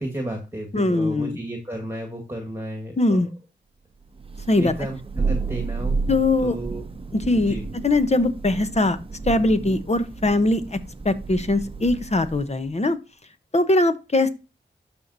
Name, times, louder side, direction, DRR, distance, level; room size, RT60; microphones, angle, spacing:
voice 1, 0.0-3.2 4.6-6.0 6.4-6.8 7.5-7.6, right 1 dB, 10° right, 2 dB, 1.8 m, -33 dB
voice 2, 0.7-1.4 3.0-3.3 4.5-4.7 6.1-6.6 7.1-7.6 7.8-9.0 9.3-10.8 11.0-13.0 13.5-14.3, left 2 dB, 35° left, 11 dB, 0.9 m, -21 dB
Thunder, 4.2-12.6, right 4 dB, 30° right, 0.7 m, -31 dB
12.5 x 4.5 x 2.7 m, 0.28 s
wide cardioid pair, 65°, 19 cm